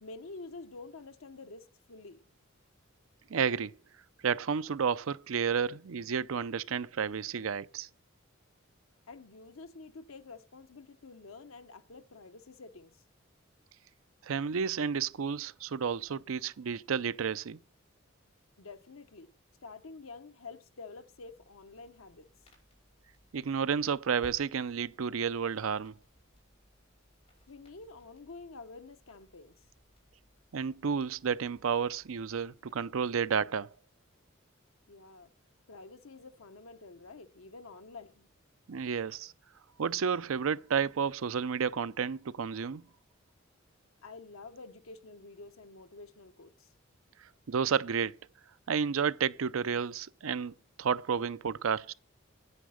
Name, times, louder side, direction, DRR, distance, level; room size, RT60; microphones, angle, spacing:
voice 1, 0.0-2.2 9.1-12.9 18.6-19.3 19.6-22.3 27.5-29.6 34.9-35.3 35.7-38.3 44.0-46.7 51.8-51.9, left 3 dB, 90° left, 0.9 m, -49 dB
voice 2, 3.3-3.7 4.2-7.9 14.2-17.6 23.3-25.9 30.5-33.7 38.7-39.3 39.8-42.8 47.5-48.2 48.7-50.5 50.8-51.9, right 6 dB, 85° right, 0.5 m, -31 dB
sound 1, 21.1-33.2, equal, 30° left, 5.8 m, -62 dB
9.9 x 9.4 x 6.3 m
head